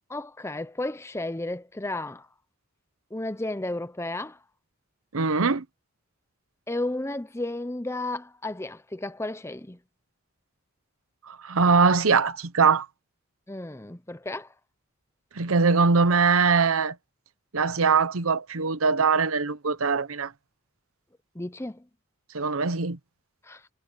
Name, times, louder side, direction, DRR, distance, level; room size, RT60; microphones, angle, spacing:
voice 1, 0.1-2.3 3.1-4.4 6.7-9.8 13.5-14.5 21.3-21.8 23.4-23.6, left 2 dB, 15° left, 0.8 m, -33 dB
voice 2, 5.1-5.6 11.3-12.9 15.3-17.0 17.5-20.3 22.3-23.0, right 4 dB, 80° right, 0.9 m, -22 dB
head